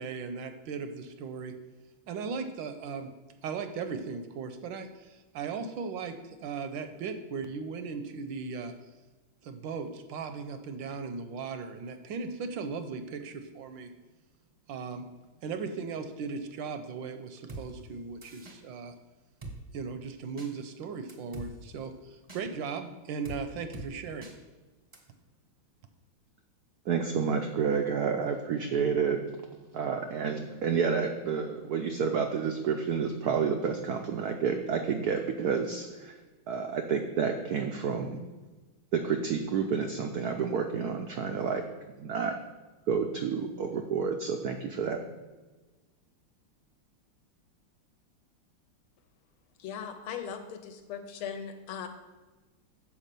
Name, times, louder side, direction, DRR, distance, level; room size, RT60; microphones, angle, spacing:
voice 1, 0.0-1.5 2.1-3.1 3.4-6.2 6.4-8.7 9.4-13.9 14.7-15.0 15.4-18.9 19.7-24.3, right 5 dB, 75° right, 8 dB, 1.2 m, -37 dB
Drum kit, 17.5-17.6 18.2-18.6 19.4-19.6 20.4-20.5 21.1-21.5 22.3-22.4 23.2-23.4 23.7-23.9 24.2-24.3 24.9-25.0, right 2 dB, 25° right, 0.6 m, -42 dB
voice 2, 26.9-29.2 29.7-36.1 36.5-38.2 38.9-41.6 42.0-42.3 42.9-45.0, right 6 dB, 90° right, 4 dB, 0.8 m, -29 dB
voice 3, 49.6-51.9, left 7 dB, 85° left, 7 dB, 1.7 m, -39 dB
7.2 x 4.7 x 6.7 m, 1.2 s
omnidirectional pair, 2.3 m